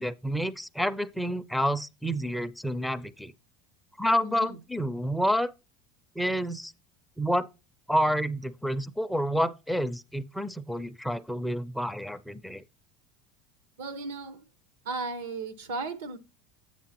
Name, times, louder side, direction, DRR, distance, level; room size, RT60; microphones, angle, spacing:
voice 1, 0.0-3.3 4.0-5.5 6.2-6.7 7.2-7.5 7.9-12.6, equal, 5° left, 0.4 m, -29 dB
voice 2, 4.2-4.6 13.8-14.4 14.8-16.2, right 3 dB, 90° right, 1.1 m, -35 dB
8.3 x 7.2 x 2.9 m
supercardioid pair, 115°, 0 cm